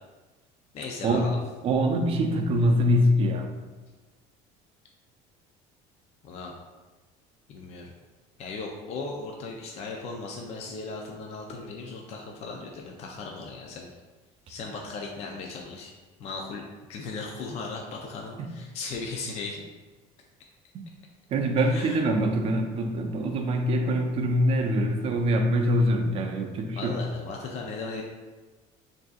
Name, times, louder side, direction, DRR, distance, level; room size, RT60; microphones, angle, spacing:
voice 1, 0.7-1.4 6.2-6.5 7.5-7.9 8.4-13.9 14.5-15.9 16.2-19.7 21.7-22.0 26.7-28.0, left 3 dB, 45° left, 0 dB, 0.5 m, -37 dB
voice 2, 1.6-3.5 18.4-18.5 20.7-20.9 21.3-27.0, equal, 40° right, 4 dB, 0.5 m, -24 dB
6.3 x 2.6 x 2.4 m, 1.3 s
cardioid pair, 135°, 15 cm